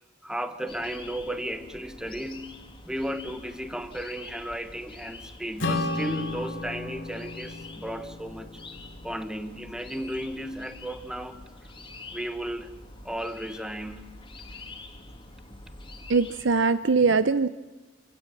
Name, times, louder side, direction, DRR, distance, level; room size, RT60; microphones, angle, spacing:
voice 1, 0.2-8.6 9.0-11.4 12.1-12.7 13.0-14.1, right 1 dB, 5° right, 9 dB, 1.2 m, -34 dB
sound 1, 0.7-16.4, left 3 dB, 25° left, 2.2 m, -46 dB
Acoustic guitar / Strum, 5.6-10.3, left 2 dB, 65° left, 2.8 m, -34 dB
voice 2, 16.1-17.5, right 4 dB, 65° right, 13 dB, 0.7 m, -22 dB
27.5 x 17.0 x 7.3 m, 1.2 s
head